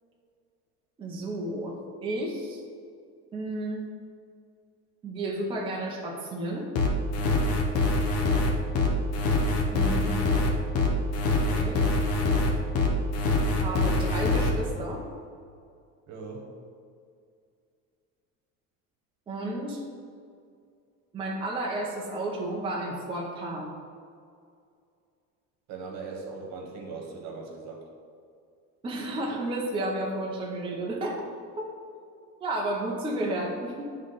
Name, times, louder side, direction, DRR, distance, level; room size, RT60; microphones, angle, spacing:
voice 1, 1.0-2.6 3.3-3.9 5.0-6.7 9.7-10.2 11.5-11.8 13.5-15.1 19.3-19.8 21.1-23.7 28.8-31.2 31.6-31.7 32.4-33.8, right 1 dB, 15° right, -2 dB, 0.6 m, -32 dB
sound 1, 6.8-14.5, left 2 dB, 55° left, 0.9 m, -24 dB
voice 2, 7.2-7.5 16.1-16.5 25.7-27.8, right 4 dB, 60° right, 1 dB, 1.3 m, -40 dB
9.4 x 3.1 x 4.0 m, 2.3 s
cardioid pair, 170°, 30 cm